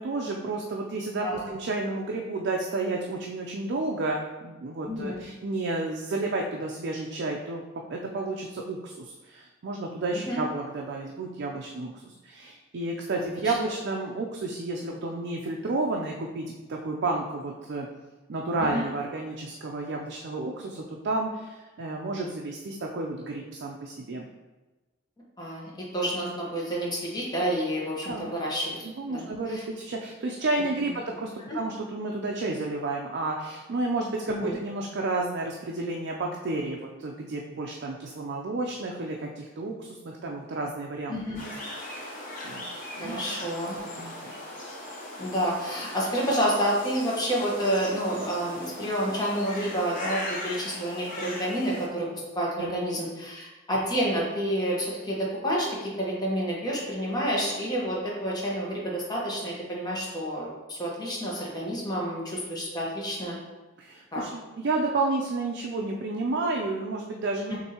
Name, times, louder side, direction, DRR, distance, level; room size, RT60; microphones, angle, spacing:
voice 1, 0.0-7.6 7.9-17.9 18.3-24.3 28.0-28.3 28.8-41.2 42.0-42.1 42.4-42.6 43.0-43.2 43.8-44.4 52.6-52.8 63.8-67.6, right 2 dB, 55° right, 0 dB, 0.4 m, -31 dB
voice 2, 4.9-5.2 10.1-10.4 13.4-13.5 18.6-18.8 25.4-29.6 30.8-30.9 34.3-34.5 41.1-41.4 43.0-43.8 45.2-63.4 64.1-64.2 67.5-67.6, equal, 20° left, -4 dB, 1.1 m, -29 dB
sound 1, 41.3-51.9, left 1 dB, 40° left, 0.9 m, -39 dB
6.5 x 2.7 x 2.8 m, 1.2 s
head